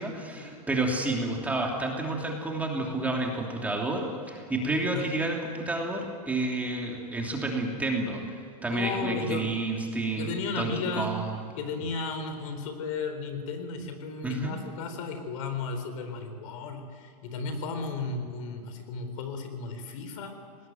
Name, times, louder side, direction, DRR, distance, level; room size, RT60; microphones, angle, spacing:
voice 1, 0.0-8.2 8.6-11.4 14.2-14.6, right 2 dB, 5° right, 0 dB, 3.0 m, -30 dB
voice 2, 8.7-9.5 10.2-11.2 11.6-20.3, left 4 dB, 55° left, 7 dB, 4.1 m, -34 dB
21.0 x 19.0 x 9.3 m, 2.3 s
supercardioid pair, 145°, 20 cm